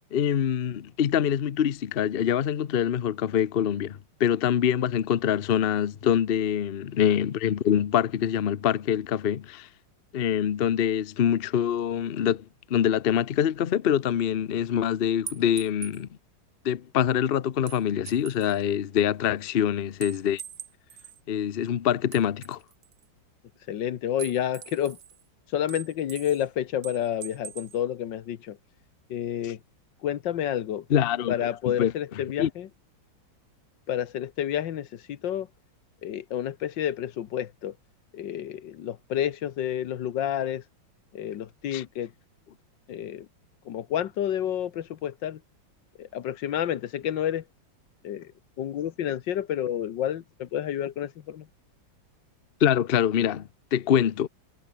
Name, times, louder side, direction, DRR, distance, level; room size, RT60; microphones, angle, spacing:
voice 1, 0.1-9.7 10.1-12.4 12.7-16.1 16.6-20.4 21.3-22.6 29.4-29.5 30.9-31.9 32.4-32.5 41.7-41.8 52.6-54.3, left 9 dB, 85° left, 0.5 m, -25 dB
sound 1, 15.3-16.0 17.7-18.6 20.0-21.2 22.1-23.0 24.2-25.2 25.7-26.5 26.8-27.8, right 8 dB, 55° right, 1.7 m, -42 dB
voice 2, 23.7-25.0 25.5-28.6 29.1-29.6 30.0-30.8 31.3-32.7 33.9-35.5 36.0-37.7 38.1-40.6 41.1-42.1 42.9-43.3 43.6-45.4 46.0-47.4 48.0-48.3 48.6-51.5, left 10 dB, 70° left, 1.7 m, -30 dB
omnidirectional pair, 2.2 m